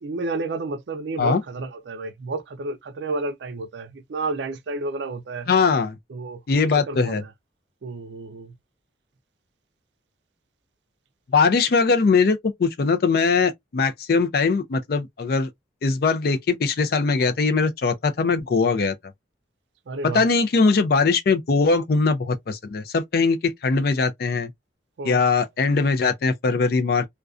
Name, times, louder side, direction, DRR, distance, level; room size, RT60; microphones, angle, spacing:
voice 1, 0.0-5.5 6.1-7.3 7.8-8.5 19.9-20.3 25.0-25.3, right 3 dB, 70° right, 0.4 m, -31 dB
voice 2, 5.5-6.0 6.5-7.2 11.3-15.5 15.8-18.9 20.0-24.5 25.0-27.1, left 4 dB, 55° left, 0.4 m, -21 dB
2.4 x 2.2 x 2.3 m
head